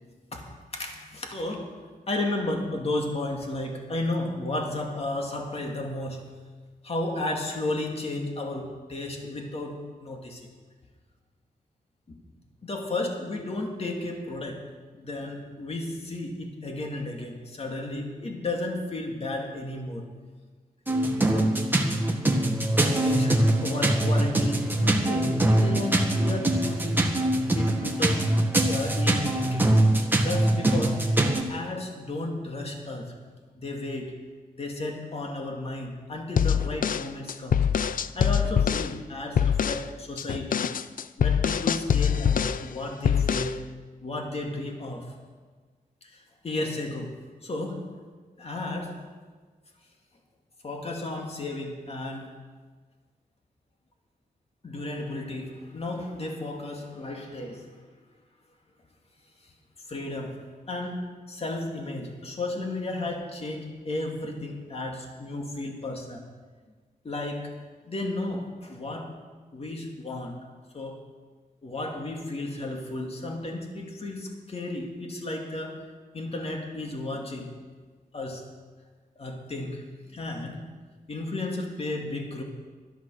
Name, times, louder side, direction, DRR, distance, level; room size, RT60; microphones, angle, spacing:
voice 1, 0.7-1.8 2.1-6.2 6.8-10.5 12.1-12.2 12.6-14.6 14.9-20.1 21.3-21.6 22.8-27.2 27.5-28.3 28.7-29.7 30.2-31.0 31.5-33.1 33.5-34.2 34.6-37.6 38.1-40.7 41.2-43.6 44.0-45.1 46.0-47.9 48.4-49.0 50.6-52.3 54.6-57.7 59.9-60.4 60.7-66.2 67.0-67.5 67.9-69.1 69.5-70.4 70.7-71.0 71.6-75.8 76.1-77.5 78.1-78.5 79.2-80.7 81.1-82.4, left 2 dB, 40° left, 1 dB, 2.3 m, -33 dB
sound 1, 20.9-31.4, right 1 dB, 15° right, 1.5 m, -23 dB
sound 2, 36.4-38.9 39.4-39.9 40.2-42.7 43.0-43.6, left 8 dB, 65° left, 0.5 m, -24 dB
13.0 x 12.5 x 6.4 m, 1.4 s
wide cardioid pair, 120°, 15 cm